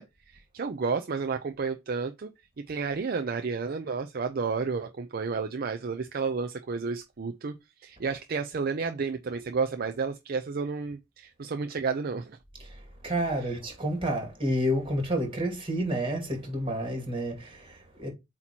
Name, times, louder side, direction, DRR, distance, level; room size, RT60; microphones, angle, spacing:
voice 1, 0.0-2.3 2.7-12.4, right 5 dB, 50° right, 0.5 m, -31 dB
voice 2, 12.6-18.1, equal, 30° right, 2.4 m, -30 dB
8.0 x 3.0 x 4.4 m
head